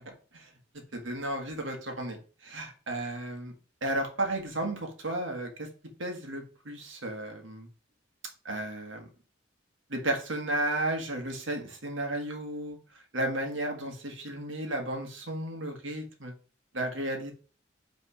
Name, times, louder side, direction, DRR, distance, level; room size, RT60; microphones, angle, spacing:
voice 1, 0.9-3.5 3.8-5.7 6.0-7.7 8.4-9.1 9.9-12.8 13.1-16.3 16.7-17.3, right 1 dB, 75° right, 3 dB, 1.6 m, -33 dB
5.6 x 3.6 x 4.8 m, 0.37 s
head